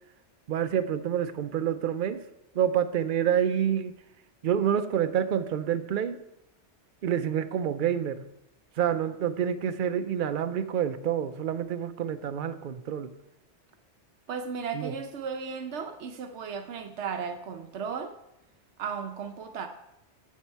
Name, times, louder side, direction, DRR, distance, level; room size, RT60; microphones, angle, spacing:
voice 1, 0.5-2.2 2.5-3.9 4.4-6.2 7.0-8.2 8.8-13.1 14.7-14.9, right 9 dB, 55° right, 11 dB, 0.6 m, -28 dB
voice 2, 14.3-18.1 18.8-19.7, right 6 dB, 75° right, 6 dB, 0.9 m, -35 dB
7.6 x 7.3 x 4.5 m, 0.85 s
omnidirectional pair, 1.2 m